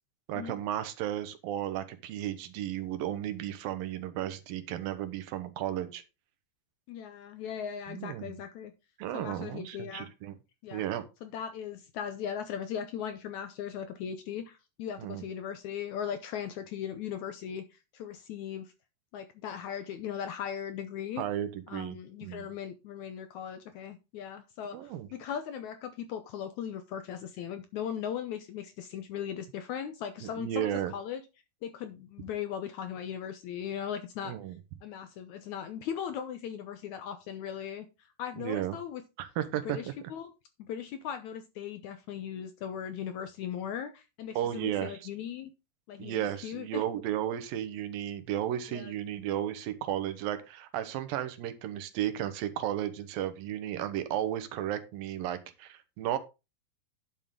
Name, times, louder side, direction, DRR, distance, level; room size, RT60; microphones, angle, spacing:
voice 1, 0.3-6.0 7.9-8.4 9.0-10.3 10.7-11.1 15.0-15.3 21.2-22.0 22.2-22.5 24.7-25.1 30.2-30.9 34.2-34.6 38.4-38.8 39.2-39.9 44.4-45.1 46.0-56.2, right 11 dB, 80° right, 11 dB, 2.8 m, -34 dB
voice 2, 6.9-8.7 9.1-10.1 10.6-10.8 11.2-17.7 17.9-18.7 19.1-21.2 21.7-31.2 31.6-34.4 34.8-37.9 38.2-39.0 39.7-40.3 40.6-45.5 45.9-46.8 48.7-49.0, left 8 dB, 70° left, 9 dB, 1.9 m, -38 dB
11.0 x 7.1 x 3.7 m, 0.27 s
omnidirectional pair, 4.1 m